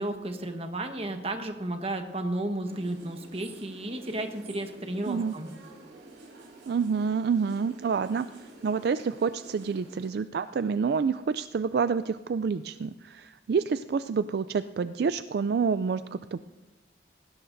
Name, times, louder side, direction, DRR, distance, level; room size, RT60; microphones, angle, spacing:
voice 1, 0.0-5.5, right 1 dB, 35° right, 5 dB, 1.2 m, -33 dB
sound 1, 2.6-10.1, right 2 dB, 90° right, 3.8 m, -50 dB
voice 2, 5.1-5.4 6.7-8.3 8.6-16.4, right 5 dB, 60° right, 12 dB, 0.3 m, -28 dB
19.0 x 16.5 x 2.6 m, 1.2 s
head